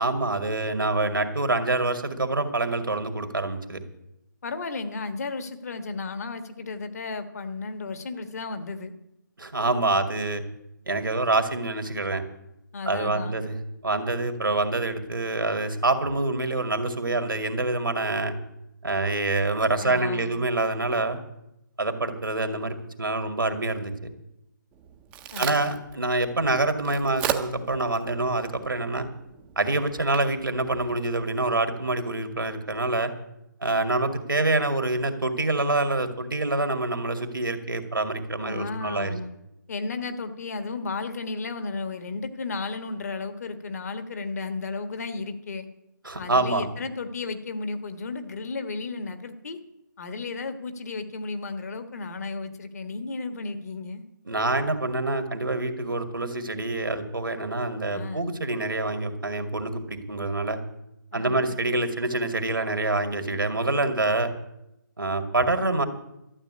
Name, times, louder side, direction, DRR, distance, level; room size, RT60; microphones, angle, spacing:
voice 1, 0.0-3.8 9.4-10.4 10.9-12.2 12.8-13.6 13.8-18.3 18.8-21.2 21.8-23.9 25.4-29.1 29.6-33.1 33.6-39.2 46.0-46.6 54.3-60.6 61.1-64.3 65.0-65.8, right 2 dB, 90° right, 7 dB, 2.1 m, -26 dB
voice 2, 4.4-8.9 12.7-13.4 19.8-20.4 25.3-25.6 38.4-39.3 39.7-45.7 46.2-49.6 50.0-54.0 57.9-58.4 61.1-61.6, left 3 dB, 50° left, 9 dB, 1.5 m, -34 dB
Crack, 24.7-31.6, right 10 dB, 10° right, 0.6 m, -37 dB
12.5 x 7.3 x 9.8 m, 0.85 s
figure-of-eight pair, 155°, 11 cm